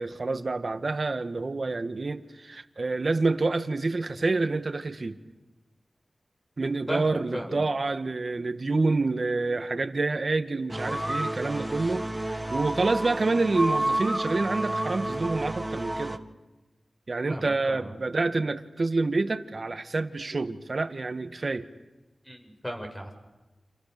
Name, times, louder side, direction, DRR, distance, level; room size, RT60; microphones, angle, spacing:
voice 1, 0.0-5.2 6.6-16.2 17.1-21.7, right 3 dB, 60° right, 10 dB, 1.7 m, -28 dB
voice 2, 6.9-7.6 17.3-17.9 22.2-23.1, equal, 10° left, 3 dB, 7.2 m, -35 dB
sound 1, 10.7-16.2, right 1 dB, 20° right, 1.9 m, -30 dB
29.5 x 28.0 x 6.9 m, 1.1 s
cardioid pair, 45°, 0 cm